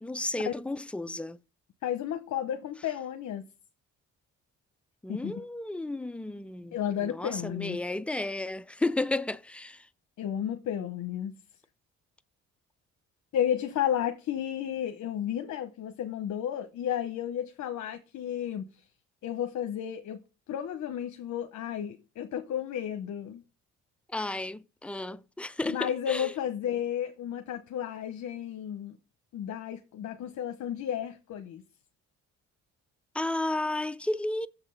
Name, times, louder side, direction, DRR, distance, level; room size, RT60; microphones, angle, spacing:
voice 1, 0.0-1.4 5.0-9.9 24.1-26.3 33.1-34.5, left 2 dB, 5° left, 0.3 m, -33 dB
voice 2, 1.8-3.5 5.1-5.3 6.7-7.8 10.2-11.4 13.3-18.7 19.2-20.2 20.5-23.4 25.7-29.0 29.3-31.6, left 10 dB, 70° left, 0.8 m, -32 dB
7.0 x 5.9 x 5.6 m
cardioid pair, 90°, 30 cm